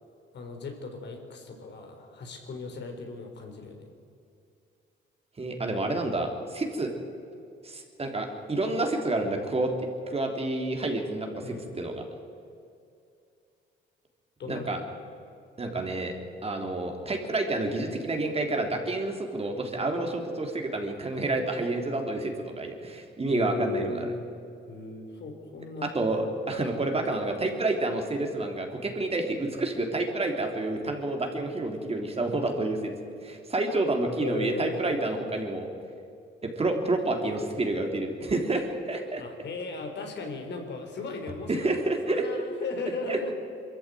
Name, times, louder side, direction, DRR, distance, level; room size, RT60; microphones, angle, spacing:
voice 1, 0.3-3.9 11.4-11.6 14.4-15.0 23.3-24.3 24.7-25.9 26.7-26.9 34.2-34.8 39.2-41.7 42.1-43.3, left 3 dB, 60° left, 4 dB, 3.8 m, -37 dB
voice 2, 5.4-6.9 7.6-9.7 10.1-12.0 14.5-14.8 15.6-16.1 16.4-23.9 25.8-32.9 33.2-35.7 36.4-39.2 41.5-42.2 43.1-43.2, right 2 dB, 30° right, 3 dB, 3.3 m, -29 dB
22.0 x 14.0 x 9.2 m, 2.5 s
cardioid pair, 90°, 20 cm